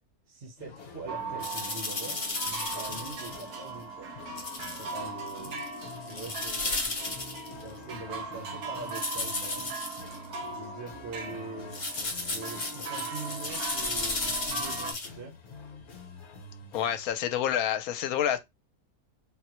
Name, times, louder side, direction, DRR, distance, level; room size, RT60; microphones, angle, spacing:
voice 1, 0.3-2.2 2.6-4.1 4.7-5.5 6.1-6.8 7.6-9.7 10.5-11.8 12.3-15.3, right 3 dB, 45° right, 1.0 m, -43 dB
sound 1, 0.6-17.1, left 3 dB, 55° left, 1.0 m, -48 dB
sound 2, 1.1-14.9, right 4 dB, 80° right, 1.3 m, -40 dB
sound 3, 1.4-3.5 4.4-5.0 5.3-7.6 8.9-10.2 11.7-15.1, left 3 dB, 35° left, 0.6 m, -34 dB
voice 2, 16.7-18.4, left 10 dB, 80° left, 1.0 m, -28 dB
3.8 x 2.0 x 2.9 m
omnidirectional pair, 1.5 m